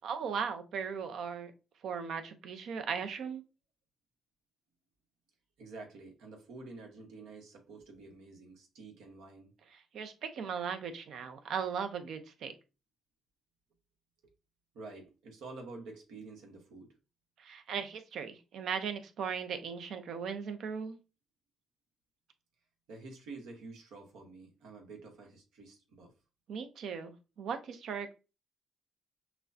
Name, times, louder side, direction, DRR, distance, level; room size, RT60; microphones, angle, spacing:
voice 1, 0.0-1.5 1.8-3.4 9.7-12.5 17.4-21.0 26.5-28.1, right 6 dB, 70° right, 0.7 m, -38 dB
voice 2, 5.6-9.5 14.7-16.9 22.9-26.1, right 3 dB, 85° right, 1.2 m, -49 dB
6.0 x 2.2 x 2.7 m
cardioid pair, 90°, 0 cm